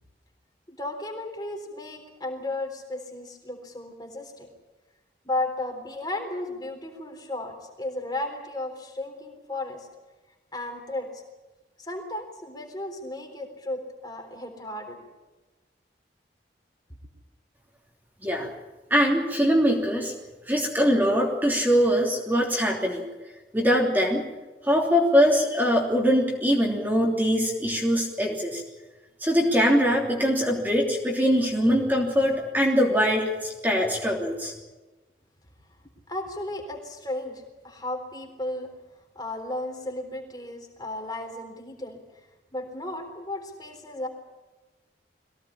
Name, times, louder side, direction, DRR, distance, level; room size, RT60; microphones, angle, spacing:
voice 1, 0.7-4.5 5.2-9.9 10.5-11.2 11.8-15.0 36.1-38.7 39.2-42.3 42.5-44.1, left 2 dB, 20° left, 3 dB, 3.7 m, -34 dB
voice 2, 18.9-20.1 20.5-23.1 23.5-24.2 24.6-28.6 29.2-34.5, equal, 10° right, -1 dB, 3.2 m, -22 dB
22.5 x 17.0 x 9.9 m, 1.2 s
head